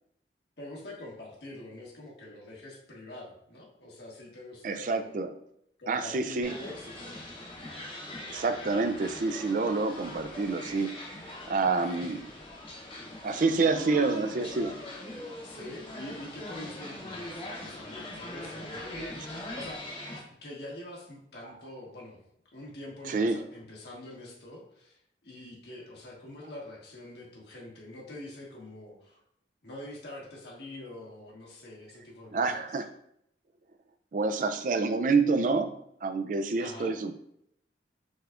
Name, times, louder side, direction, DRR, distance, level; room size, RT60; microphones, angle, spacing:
voice 1, 0.6-5.1 5.8-7.2 11.8-12.2 13.0-13.2 13.5-13.9 15.4-22.2 22.5-29.2 29.6-32.7 36.6-37.0, left 1 dB, 70° left, -3 dB, 1.4 m, -45 dB
voice 2, 4.6-5.4 5.9-6.5 8.3-10.9 11.5-12.2 13.2-14.8 23.1-23.4 32.3-32.9 34.1-37.1, right 3 dB, 45° right, 9 dB, 0.4 m, -27 dB
sound 1, 6.4-20.2, left 1 dB, 30° left, 0.9 m, -42 dB
6.2 x 3.4 x 2.4 m, 0.72 s
head